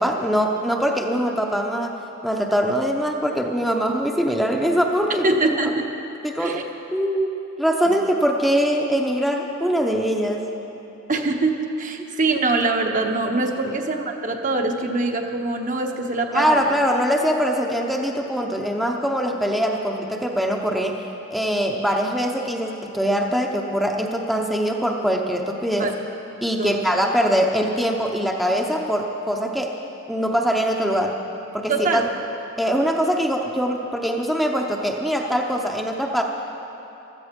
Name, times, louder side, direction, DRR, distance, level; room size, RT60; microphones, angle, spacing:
voice 1, 0.0-1.9 2.2-5.2 6.2-6.7 6.9-10.4 13.6-13.7 16.3-21.0 21.3-25.9 26.4-29.7 30.1-31.2 31.5-32.0 32.6-36.2, equal, ahead, 0 dB, 0.7 m, -22 dB
voice 2, 5.2-5.9 6.4-6.6 7.9-8.0 11.1-16.6 25.8-25.9 26.6-27.0 31.7-32.1, right 3 dB, 40° right, 3 dB, 1.0 m, -23 dB
15.5 x 13.0 x 5.2 m, 3.0 s
head